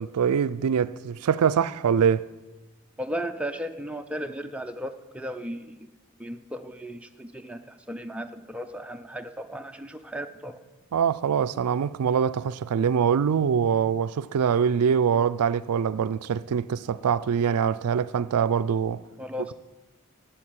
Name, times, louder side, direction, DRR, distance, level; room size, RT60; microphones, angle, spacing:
voice 1, 0.0-2.3 10.9-19.0 19.4-19.5, right 7 dB, 90° right, 0.4 m, -24 dB
voice 2, 3.0-5.8 6.2-10.6 19.2-19.5, equal, 5° right, 0.5 m, -35 dB
10.5 x 7.5 x 8.9 m
head